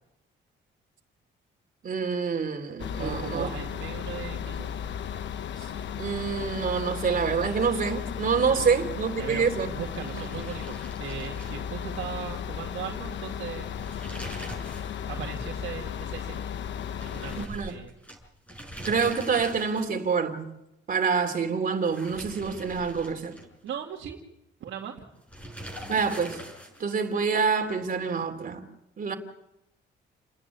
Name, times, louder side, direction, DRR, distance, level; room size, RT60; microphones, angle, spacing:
voice 1, 1.8-3.5 6.0-9.7 10.1-10.3 17.4-17.7 18.8-20.5 20.9-23.4 25.9-26.4 26.8-28.6 29.0-29.1, right 5 dB, 45° right, 3.3 m, -27 dB
sound 1, 2.8-17.5, left 8 dB, 70° left, 1.0 m, -35 dB
voice 2, 3.0-4.7 8.6-8.7 9.2-13.7 15.1-16.4 16.9-17.9 23.6-24.2 24.6-25.0, right 8 dB, 70° right, 2.3 m, -38 dB
sound 2, 9.7-12.2 12.5-12.6 13.6-15.0 15.3-15.4 17.0-20.1 21.7-23.7 25.3-27.0, equal, 5° left, 6.8 m, -43 dB
29.5 x 10.5 x 9.7 m
cardioid pair, 90°, 20 cm